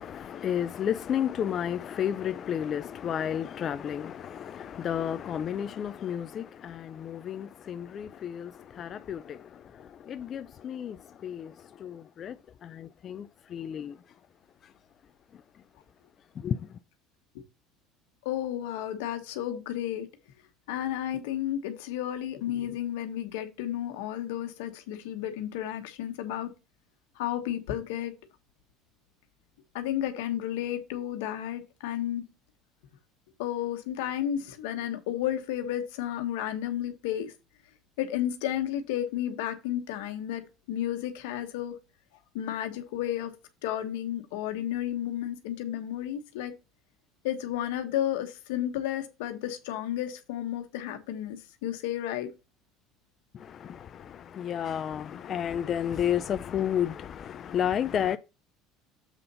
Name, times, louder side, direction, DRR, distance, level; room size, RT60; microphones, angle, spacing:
voice 1, 0.0-14.0 16.4-16.8 53.3-58.2, left 9 dB, 40° left, 0.5 m, -32 dB
voice 2, 18.2-20.1 20.7-26.5 27.2-28.1 29.7-32.2 33.4-37.3 38.0-40.4 40.7-41.7 42.3-43.3 43.6-46.5 47.2-52.3, left 11 dB, 85° left, 1.4 m, -32 dB
7.4 x 3.9 x 5.5 m
supercardioid pair, 110°, 0 cm